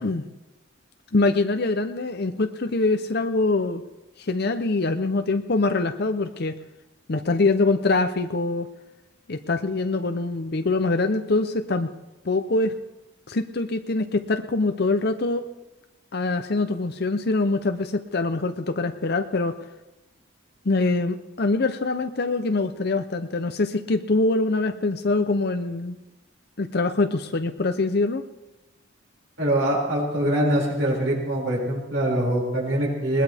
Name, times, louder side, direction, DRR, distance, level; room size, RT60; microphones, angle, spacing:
voice 1, 1.1-3.8 4.2-6.5 7.1-8.7 9.3-11.9 12.2-12.7 13.3-15.4 16.1-19.6 20.7-25.9 26.6-28.2, left 3 dB, 55° left, 8 dB, 0.7 m, -24 dB
voice 2, 29.4-33.2, right 1 dB, 70° right, -3 dB, 5.9 m, -23 dB
21.0 x 19.5 x 3.5 m, 0.99 s
head